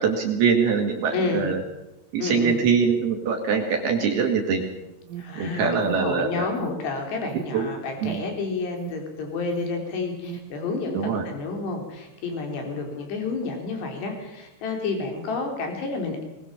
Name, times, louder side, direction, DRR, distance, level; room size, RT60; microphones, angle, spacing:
voice 1, 0.0-1.6 2.1-4.6 5.4-6.5 7.5-7.7 8.0-8.2 10.9-11.2, right 6 dB, 60° right, 2 dB, 3.4 m, -23 dB
voice 2, 1.1-1.4 2.2-2.6 5.2-5.7 6.0-16.2, left 4 dB, 55° left, 3 dB, 5.9 m, -30 dB
Alarm, 4.8-10.7, right 11 dB, 80° right, 3.6 m, -41 dB
21.5 x 20.5 x 7.2 m, 0.91 s
omnidirectional pair, 5.9 m